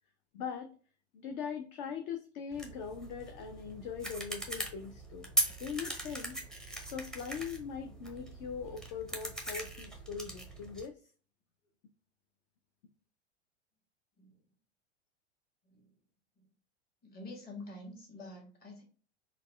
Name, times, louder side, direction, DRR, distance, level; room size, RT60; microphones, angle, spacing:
voice 1, 0.3-0.7 1.1-5.3 5.6-6.4 6.9-11.0, left 6 dB, 40° left, 7 dB, 0.5 m, -41 dB
sound 1, 2.5-10.9, right 1 dB, ahead, 0.6 m, -39 dB
voice 2, 17.0-18.8, left 2 dB, 25° left, 0 dB, 1.5 m, -47 dB
4.0 x 2.2 x 3.3 m, 0.39 s
figure-of-eight pair, 90°, 35 cm